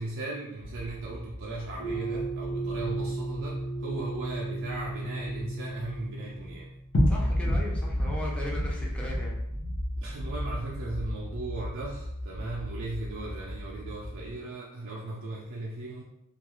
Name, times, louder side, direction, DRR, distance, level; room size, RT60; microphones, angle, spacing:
voice 1, 0.0-6.7 10.0-16.0, right 2 dB, 60° right, -4 dB, 0.4 m, -37 dB
sound 1, 0.6-6.0 6.3-6.5 6.9-14.3, equal, 55° left, 0.7 m, -32 dB
sound 2, 1.8-7.0, right 2 dB, 75° left, 1.2 m, -35 dB
voice 2, 7.1-9.4, left 1 dB, 5° left, -4 dB, 0.5 m, -37 dB
2.3 x 2.2 x 2.9 m, 0.83 s
head